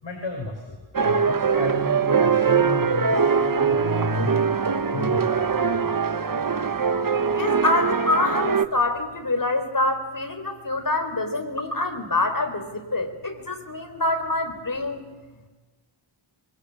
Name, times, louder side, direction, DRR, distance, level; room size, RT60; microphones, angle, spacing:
voice 1, 0.0-4.3 4.9-6.2, left 2 dB, 60° left, 1 dB, 5.7 m, -34 dB
sound 1, 0.9-8.7, right 5 dB, 40° right, 1.1 m, -22 dB
voice 2, 7.3-15.1, left 2 dB, 40° left, 6 dB, 4.3 m, -25 dB
25.5 x 24.0 x 8.8 m, 1.3 s
wide cardioid pair, 75°, 50 cm